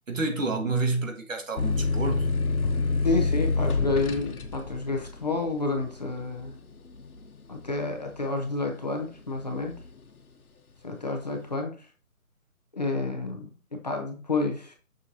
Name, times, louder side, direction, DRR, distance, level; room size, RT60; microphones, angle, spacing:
voice 1, 0.1-2.3, right 3 dB, 60° right, 1.9 m, -29 dB
sound 1, 1.6-8.8 9.3-10.0, left 3 dB, 85° left, 1.3 m, -28 dB
voice 2, 3.0-6.6 7.5-9.8 10.8-11.9 12.7-14.8, left 3 dB, 30° left, 1.0 m, -30 dB
6.4 x 6.4 x 2.9 m
hypercardioid pair, 175°, 43 cm